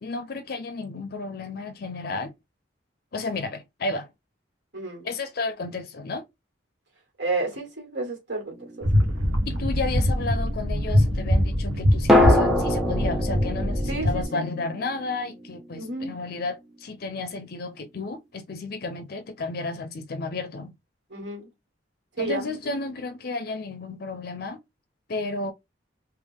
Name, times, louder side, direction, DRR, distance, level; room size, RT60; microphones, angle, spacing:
voice 1, 0.0-2.3 3.1-4.1 5.0-6.2 9.5-20.7 22.2-24.6 25.1-25.5, left 3 dB, 50° left, 0.5 m, -32 dB
voice 2, 4.7-5.1 7.2-9.2 13.9-14.4 15.8-16.1 21.1-21.5 22.2-22.5, right 2 dB, 60° right, 2.1 m, -31 dB
sound 1, 8.5-9.7 12.1-16.1 16.3-16.4, left 1 dB, ahead, 0.7 m, -25 dB
sound 2, 8.8-14.3, equal, 90° right, 1.1 m, -23 dB
3.5 x 2.9 x 3.4 m
head